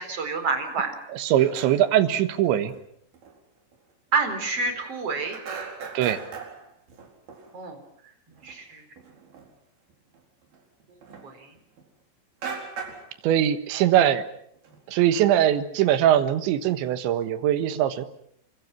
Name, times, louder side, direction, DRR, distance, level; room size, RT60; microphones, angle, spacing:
voice 1, 0.0-1.0 4.1-5.4 7.5-7.8 8.4-8.8 11.2-11.5 13.8-13.9, right 4 dB, 35° right, 8 dB, 4.8 m, -28 dB
voice 2, 1.1-2.7 6.0-6.2 13.2-14.2 14.9-18.1, right 11 dB, 85° right, 10 dB, 3.7 m, -21 dB
sound 1, 1.4-2.0 2.7-2.8 3.1-3.4 3.7-3.8 4.1-5.0 5.3-7.5 8.3-8.6 9.0-9.5 9.9-11.9 12.4-13.1 13.5-13.8 14.1-14.2 14.5-15.3, right 5 dB, 55° right, 6.1 m, -39 dB
29.0 x 24.5 x 6.0 m, 0.68 s
omnidirectional pair, 5.2 m